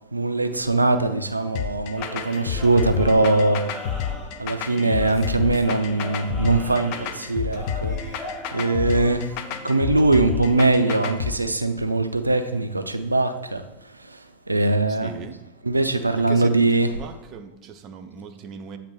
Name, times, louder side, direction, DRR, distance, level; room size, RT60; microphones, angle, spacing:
voice 1, 0.1-3.7 4.4-8.2 8.5-9.4 9.6-15.1 15.6-16.9, right 2 dB, 80° right, 0.4 m, -22 dB
sound 1, 1.5-11.3, left 8 dB, 45° left, 0.4 m, -29 dB
sound 2, 2.0-11.0, left 1 dB, 15° left, 1.3 m, -39 dB
voice 2, 14.9-15.4 16.3-18.8, right 6 dB, 35° right, 0.6 m, -38 dB
8.4 x 2.9 x 4.3 m
figure-of-eight pair, 90°, 0 cm